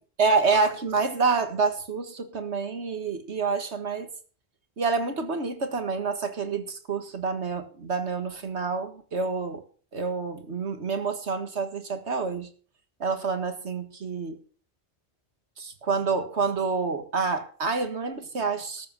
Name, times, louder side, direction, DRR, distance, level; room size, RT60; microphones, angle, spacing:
voice 1, 0.2-4.1 4.8-9.6 9.9-12.5 13.0-14.4 15.6-18.9, right 4 dB, 80° right, 7 dB, 2.0 m, -28 dB
13.0 x 7.8 x 6.2 m, 0.42 s
omnidirectional pair, 1.1 m